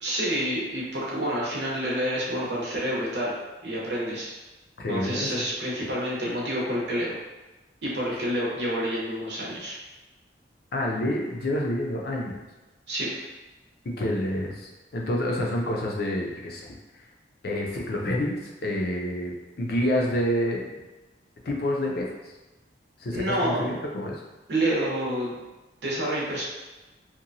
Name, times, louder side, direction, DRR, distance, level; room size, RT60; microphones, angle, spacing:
voice 1, 0.0-3.3 3.6-4.3 4.9-7.1 7.8-9.8 12.9-13.1 23.1-23.6 24.5-25.3 25.8-26.4, right 1 dB, 70° right, -4 dB, 0.8 m, -28 dB
voice 2, 4.8-5.3 10.7-12.4 13.8-16.7 17.4-20.7 21.4-22.1 23.0-24.2, left 1 dB, 55° left, -1 dB, 0.5 m, -28 dB
2.9 x 2.2 x 2.6 m, 1.1 s
head